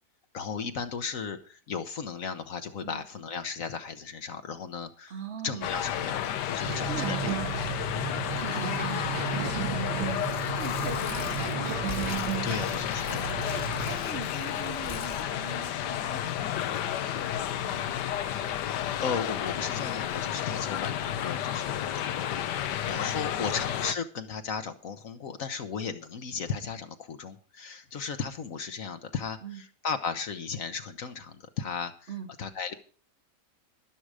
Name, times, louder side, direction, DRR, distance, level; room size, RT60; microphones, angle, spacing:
voice 1, 0.3-5.1 5.4-7.7 12.4-13.4 19.0-29.4 29.8-32.1 32.4-32.7, left 6 dB, 55° left, 8 dB, 1.3 m, -35 dB
voice 2, 5.1-5.7 6.9-7.3 7.9-12.6 13.9-18.0 22.9-23.6 29.4-29.6 32.1-32.3, right 5 dB, 45° right, 7 dB, 1.2 m, -42 dB
sound 1, 5.6-24.0, left 10 dB, 85° left, 1.4 m, -32 dB
sound 2, 6.6-14.0, right 9 dB, 80° right, 1.6 m, -34 dB
Tearing, 10.1-15.3, left 3 dB, 35° left, 1.3 m, -43 dB
11.5 x 11.5 x 4.9 m, 0.40 s
omnidirectional pair, 1.7 m